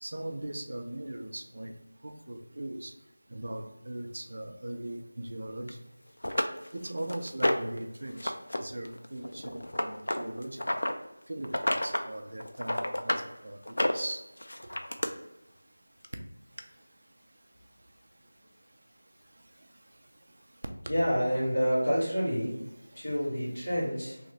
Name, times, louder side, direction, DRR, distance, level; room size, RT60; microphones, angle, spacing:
voice 1, 0.0-1.7 2.0-2.9 3.3-5.8 6.7-10.8 11.3-14.2 20.9-21.0, right 1 dB, 45° right, 5 dB, 0.4 m, -39 dB
sound 1, 5.7-5.8 6.2-7.8 8.2-8.6 8.8-10.9 11.4-12.1 12.4-13.3 13.7-15.1 16.0-16.1 16.6-16.7, left 1 dB, 65° left, 0.4 m, -30 dB
voice 2, 20.9-22.6 22.9-24.2, equal, 25° left, -10 dB, 1.3 m, -28 dB
3.0 x 2.1 x 3.9 m, 0.95 s
figure-of-eight pair, 180°, 0 cm